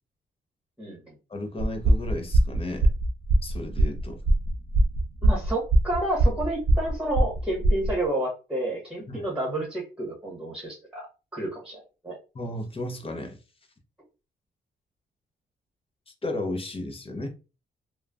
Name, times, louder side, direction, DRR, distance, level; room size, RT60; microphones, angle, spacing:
voice 1, 1.3-2.9 3.4-4.2 9.1-9.2 12.3-13.4 16.2-17.3, left 1 dB, 30° left, 0.7 m, -34 dB
sound 1, 1.6-8.0, right 1 dB, 50° right, 0.6 m, -22 dB
voice 2, 5.2-11.1 11.3-12.2, right 1 dB, 5° right, 1.3 m, -30 dB
3.0 x 2.2 x 2.4 m
cardioid pair, 90°, 20 cm